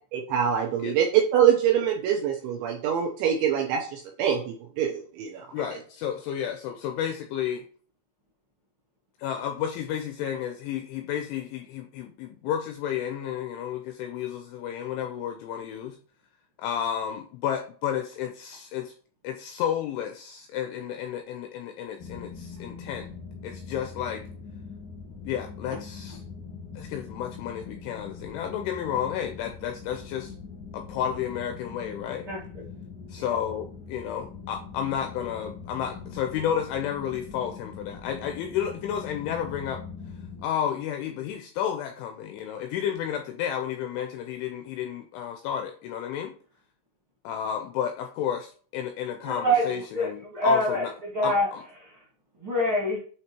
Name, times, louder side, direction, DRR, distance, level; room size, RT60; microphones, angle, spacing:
voice 1, 0.1-5.5, right 9 dB, 85° right, 1 dB, 2.7 m, -24 dB
voice 2, 5.5-7.7 9.2-16.0 16.6-18.9 19.2-23.1 23.4-24.2 25.3-26.2 26.8-30.3 30.7-32.3 33.1-39.8 40.4-46.3 47.2-50.9 51.2-51.6, left 9 dB, 85° left, 5 dB, 2.7 m, -31 dB
sound 1, 22.0-40.5, left 5 dB, 65° left, 1.1 m, -42 dB
voice 3, 49.2-51.5 51.8-52.0 52.4-53.0, equal, 50° right, -7 dB, 1.5 m, -26 dB
7.9 x 3.0 x 4.4 m, 0.43 s
omnidirectional pair, 6.0 m